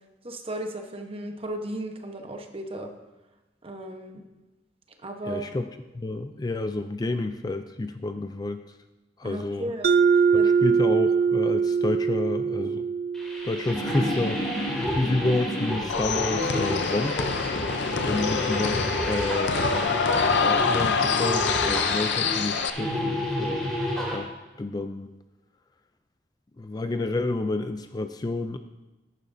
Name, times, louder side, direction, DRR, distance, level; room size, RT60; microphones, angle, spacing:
voice 1, 0.2-2.9 3.6-4.2 5.0-5.5 9.2-9.9 10.4-10.5 18.1-18.3, right 1 dB, 35° right, 4 dB, 1.1 m, -35 dB
voice 2, 5.3-5.7 5.9-8.6 9.2-9.7 10.4-12.9 13.4-14.6 14.9-17.2 18.0-18.8 19.1-19.6 20.4-23.7 24.1-24.3 24.6-25.1 26.6-28.6, left 2 dB, 20° left, 8 dB, 0.4 m, -29 dB
Mallet percussion, 9.8-14.4, right 6 dB, 60° right, 0.3 m, -23 dB
sound 1, 13.1-24.2, equal, 5° left, 2.9 m, -30 dB
sound 2, 15.9-22.7, left 5 dB, 75° left, 0.6 m, -26 dB
14.0 x 10.5 x 2.7 m, 1.1 s
head